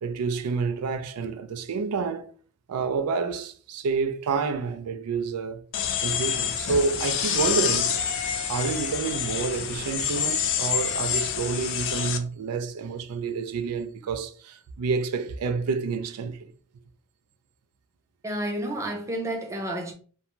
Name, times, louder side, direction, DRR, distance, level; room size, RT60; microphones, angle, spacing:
voice 1, 0.0-2.3 2.7-5.6 6.0-7.9 8.5-16.5, right 5 dB, 85° right, 0.4 m, -29 dB
sound 1, 5.7-12.2, left 8 dB, 60° left, 0.4 m, -27 dB
voice 2, 18.2-19.9, right 1 dB, 15° right, 0.5 m, -30 dB
2.5 x 2.2 x 3.0 m
head